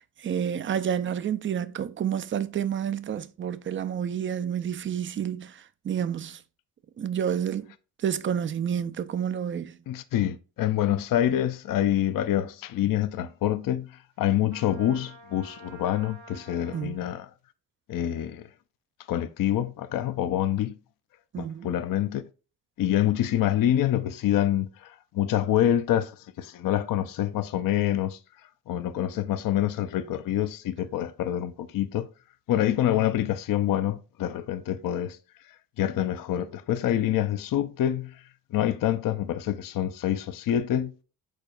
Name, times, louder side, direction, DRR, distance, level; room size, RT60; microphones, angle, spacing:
voice 1, 0.0-6.4 7.0-7.7 8.0-9.7 16.7-17.0 21.3-21.7, right 8 dB, 25° right, 0.4 m, -29 dB
voice 2, 9.9-17.3 17.9-18.5 19.1-20.8 21.4-22.2 22.8-28.2 28.7-32.1 32.5-35.2 35.8-38.2 38.5-40.9, left 11 dB, 45° left, 0.5 m, -26 dB
Trumpet, 14.5-17.0, right 3 dB, 60° right, 1.3 m, -49 dB
4.9 x 4.1 x 2.4 m
hypercardioid pair, 45°, 50 cm